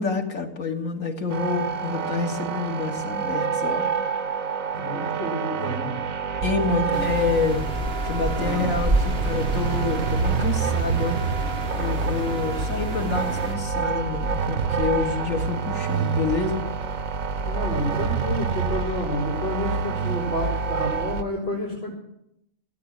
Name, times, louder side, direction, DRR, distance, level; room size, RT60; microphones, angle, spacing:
voice 1, 0.0-3.9 6.4-7.8 8.0-11.2 11.8-16.6, left 4 dB, 90° left, 2 dB, 2.4 m, -27 dB
sound 1, 1.3-21.2, right 5 dB, 90° right, 1.4 m, -27 dB
voice 2, 4.8-6.0 6.9-7.0 8.3-8.7 17.4-21.9, left 1 dB, 50° left, -6 dB, 5.1 m, -30 dB
sound 2, 6.9-13.6, right 2 dB, 50° right, 2.7 m, -30 dB
16.0 x 9.4 x 8.8 m, 0.78 s
omnidirectional pair, 1.4 m